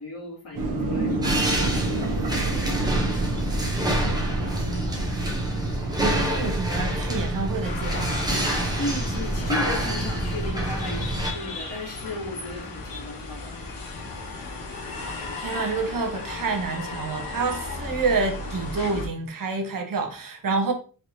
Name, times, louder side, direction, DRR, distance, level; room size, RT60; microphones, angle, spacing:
voice 1, 0.0-2.1 8.7-13.6, left 2 dB, 40° left, 2.2 m, -35 dB
sound 1, 0.5-6.9, right 2 dB, 85° right, 1.0 m, -29 dB
sound 2, 1.2-11.3, right 1 dB, 10° right, 0.7 m, -26 dB
voice 2, 4.0-4.5 6.0-8.3 15.4-20.7, right 4 dB, 60° right, 0.8 m, -28 dB
sound 3, 7.6-19.1, left 3 dB, 60° left, 1.4 m, -35 dB
4.5 x 3.1 x 2.6 m
wide cardioid pair, 160°, 38 cm